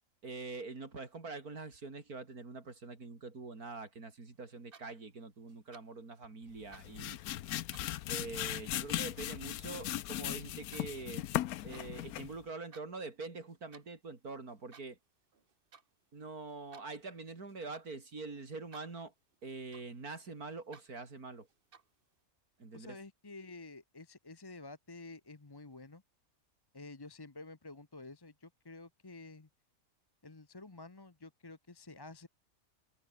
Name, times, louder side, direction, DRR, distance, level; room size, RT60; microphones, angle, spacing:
voice 1, 0.2-7.2 8.1-11.3 11.6-15.0 16.1-19.1 19.4-21.5 22.6-23.0, right 3 dB, 80° right, 4.1 m, -45 dB
sound 1, 4.5-5.2 5.5-6.1 6.4-8.0 8.5-11.9 12.3-12.9 13.2-13.9 14.5-15.1 15.3-15.9 16.2-18.1 18.5-19.0 19.3-20.2 20.5-20.9 21.5-22.0, right 5 dB, 40° right, 1.5 m, -60 dB
sound 2, 6.6-12.4, left 13 dB, 85° left, 1.1 m, -38 dB
voice 2, 22.7-26.0 26.7-29.5 30.2-32.3, left 3 dB, 20° left, 0.8 m, -50 dB
omnidirectional pair, 1.5 m